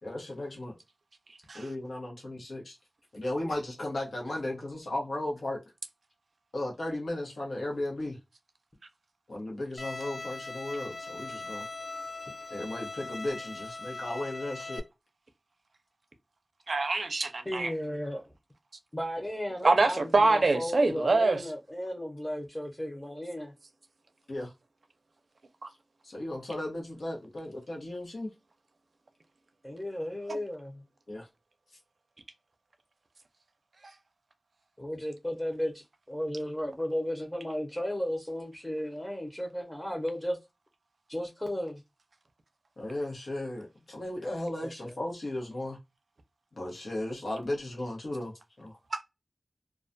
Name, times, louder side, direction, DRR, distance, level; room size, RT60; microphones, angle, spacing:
voice 1, 0.0-0.7 1.5-2.8 3.1-5.6 6.5-8.2 9.3-11.7 12.5-14.8 24.3-24.5 26.0-28.3 31.1-31.3 42.8-45.8 46.5-48.3 48.6-48.7, left 1 dB, 85° left, 0.9 m, -35 dB
Bowed string instrument, 9.8-14.8, left 3 dB, 60° left, 0.5 m, -40 dB
voice 2, 16.7-17.7 19.6-21.4 48.9-49.0, right 3 dB, 80° right, 0.4 m, -24 dB
voice 3, 17.2-18.3 18.9-23.5 29.6-30.8 34.8-40.4 41.1-41.8 44.6-45.0, equal, 15° left, 0.6 m, -35 dB
2.3 x 2.2 x 2.5 m
wide cardioid pair, 55°, 0 cm